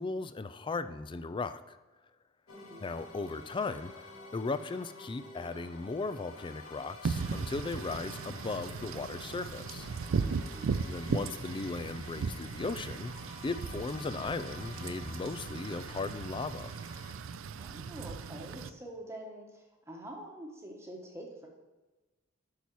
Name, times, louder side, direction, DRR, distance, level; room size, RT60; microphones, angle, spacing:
voice 1, 0.0-1.8 2.8-9.9 10.8-13.1 13.4-16.7, left 3 dB, 25° left, 12 dB, 0.3 m, -37 dB
sound 1, 2.5-17.1, left 3 dB, 85° left, 1.6 m, -50 dB
voice 2, 2.5-2.9 10.4-10.8 17.6-21.5, right 1 dB, 15° right, 0 dB, 1.1 m, -46 dB
Wind / Rain, 7.0-18.7, right 5 dB, 70° right, 0.4 m, -37 dB
8.5 x 5.5 x 4.6 m, 1.2 s
head